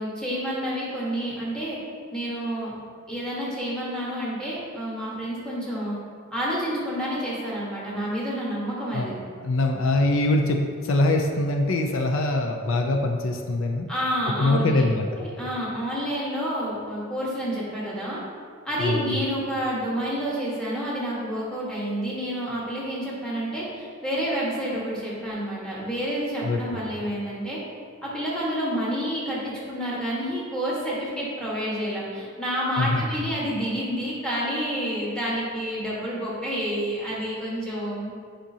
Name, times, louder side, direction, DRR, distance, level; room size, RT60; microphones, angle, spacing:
voice 1, 0.0-1.8 2.1-2.7 3.1-6.0 6.3-9.2 13.9-14.8 15.2-18.2 18.6-27.6 28.0-38.1, equal, 5° left, -7 dB, 1.4 m, -29 dB
voice 2, 9.4-13.9 14.4-15.1 18.8-19.2 26.4-26.6 32.8-33.3, left 2 dB, 70° left, 3 dB, 0.5 m, -23 dB
7.3 x 5.0 x 2.8 m, 2.1 s
head